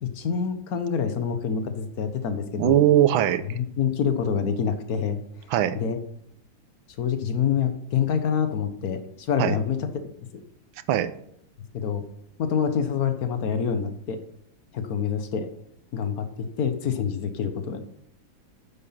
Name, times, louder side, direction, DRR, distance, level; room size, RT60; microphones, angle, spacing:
voice 1, 0.0-2.8 3.5-5.2 5.7-6.0 7.0-10.3 11.7-12.1 12.4-14.2 14.7-15.5 15.9-17.8, left 7 dB, 55° left, 8 dB, 1.4 m, -26 dB
voice 2, 2.6-3.6 5.5-5.8 9.4-9.6 10.9-11.1, right 11 dB, 85° right, 13 dB, 1.5 m, -20 dB
9.8 x 7.8 x 5.8 m, 0.72 s
omnidirectional pair, 2.2 m